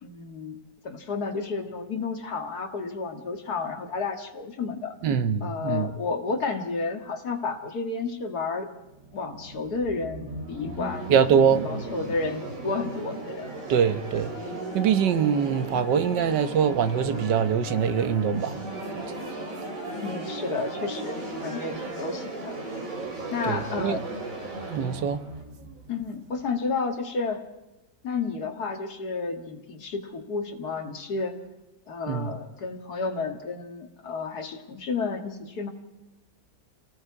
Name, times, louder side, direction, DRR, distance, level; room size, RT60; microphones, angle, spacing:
voice 1, 0.0-5.0 5.4-8.7 9.1-13.5 14.8-15.1 20.0-22.6 23.3-24.0 25.9-27.5 28.0-31.3 31.9-35.7, left 4 dB, 65° left, 2.4 m, -31 dB
voice 2, 5.0-5.9 11.1-11.6 13.7-14.3 14.7-18.6 18.9-19.0 23.5-24.0 24.7-25.2 32.1-32.3, right 7 dB, 85° right, 1.7 m, -23 dB
sound 1, 8.8-26.7, right 2 dB, 50° right, 3.3 m, -36 dB
29.5 x 18.5 x 4.8 m
omnidirectional pair, 1.9 m